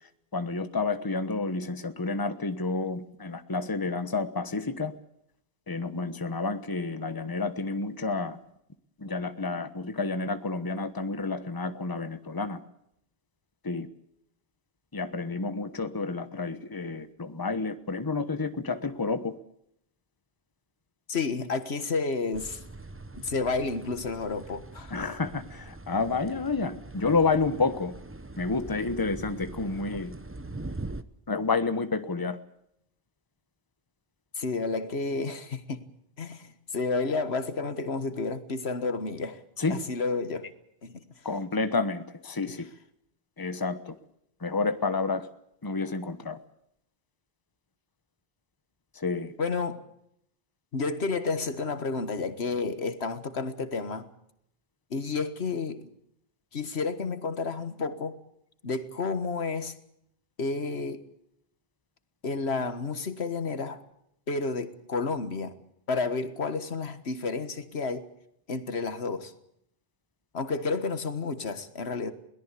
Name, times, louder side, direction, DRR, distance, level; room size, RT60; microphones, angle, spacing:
voice 1, 0.3-4.9 5.7-8.4 9.0-12.6 13.6-13.9 14.9-19.3 24.9-27.9 28.4-30.1 31.3-32.4 39.6-39.8 41.2-42.6 43.4-44.0 44.4-45.3 45.6-46.4 48.9-49.3, left 3 dB, 20° left, 1.1 m, -30 dB
voice 2, 21.1-22.6 23.2-25.0 34.4-35.8 36.2-39.4 39.7-40.5 40.8-41.1 42.5-42.6 49.4-49.8 50.7-54.1 54.9-55.9 56.5-58.2 58.6-59.8 60.4-61.0 62.2-63.8 64.3-65.5 65.9-68.1 68.5-69.3 70.3-72.1, left 4 dB, 90° left, 1.8 m, -31 dB
sound 1, 22.3-31.0, right 2 dB, 15° right, 0.7 m, -42 dB
22.0 x 17.5 x 8.4 m
omnidirectional pair, 1.1 m